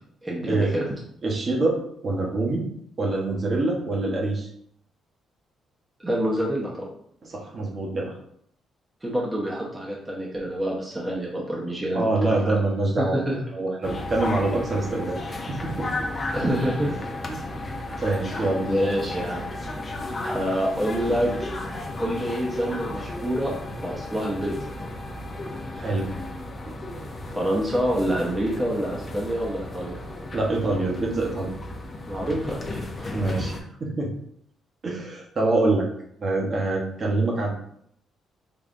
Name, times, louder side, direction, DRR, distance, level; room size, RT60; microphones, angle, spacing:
voice 1, 0.2-0.9 6.0-6.9 9.0-12.6 13.0-13.4 16.3-17.0 17.9-18.0 18.7-19.5 20.2-21.3 22.0-24.7 27.3-30.0 32.1-33.2, equal, 15° right, -4 dB, 0.8 m, -27 dB
voice 2, 1.2-2.7 3.0-4.5 7.2-8.1 11.9-15.2 15.5-15.9 16.9-17.0 17.3-17.4 18.0-18.7 25.7-26.1 26.7-26.8 30.3-31.5 33.1-34.1 34.8-35.8 36.2-37.5, right 2 dB, 45° right, -2 dB, 1.0 m, -25 dB
sound 1, 13.8-33.6, left 2 dB, 35° left, 0.6 m, -34 dB
3.7 x 3.2 x 2.5 m, 0.68 s
cardioid pair, 90°, 0 cm